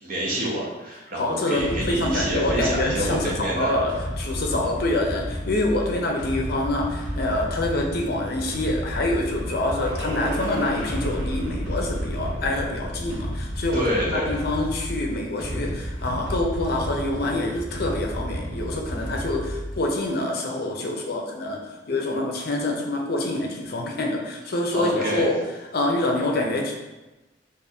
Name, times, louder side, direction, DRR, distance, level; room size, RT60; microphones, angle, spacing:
voice 1, 0.0-3.8 13.7-14.4 24.7-25.3, equal, 50° right, -4 dB, 0.8 m, -27 dB
voice 2, 1.2-21.6 21.9-25.4 25.7-26.7, left 1 dB, 55° left, 1 dB, 0.5 m, -26 dB
sound 1, 1.6-20.0, equal, 5° right, 1.2 m, -32 dB
sound 2, 8.6-14.8, right 1 dB, 80° right, 0.7 m, -36 dB
2.5 x 2.5 x 4.1 m, 1.1 s
head